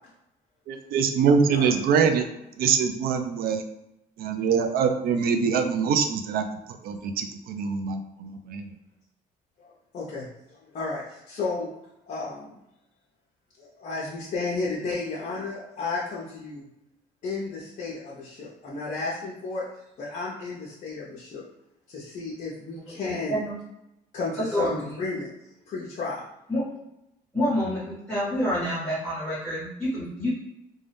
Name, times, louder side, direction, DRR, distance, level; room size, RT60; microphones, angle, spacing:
voice 1, 0.7-2.2 2.6-3.6 4.2-6.4 6.8-8.8, right 6 dB, 65° right, 7 dB, 0.4 m, -24 dB
voice 2, 1.4-1.8 9.6-11.7 12.1-12.6 13.6-16.7 17.2-19.7 20.0-21.4 21.9-23.4 24.1-25.3 25.7-26.3, left 3 dB, 45° left, -6 dB, 0.7 m, -33 dB
voice 3, 24.4-24.9 26.5-26.6 27.3-30.3, equal, 5° left, -10 dB, 1.2 m, -27 dB
2.6 x 2.3 x 3.4 m, 0.86 s
cardioid pair, 110°, 17 cm